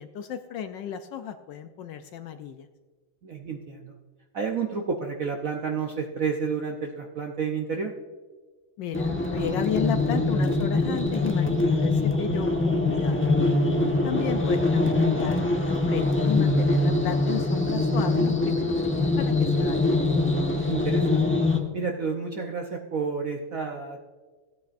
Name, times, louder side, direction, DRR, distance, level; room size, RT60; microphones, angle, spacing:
voice 1, 0.0-2.7 8.8-13.3 14.0-20.3, left 9 dB, 75° left, 9 dB, 1.1 m, -34 dB
voice 2, 3.2-3.9 4.3-7.9 20.7-21.3 21.7-24.0, right 5 dB, 65° right, 2 dB, 0.8 m, -30 dB
sound 1, 8.9-21.6, left 2 dB, 10° left, 0.6 m, -23 dB
16.0 x 9.2 x 2.5 m, 1.4 s
omnidirectional pair, 2.3 m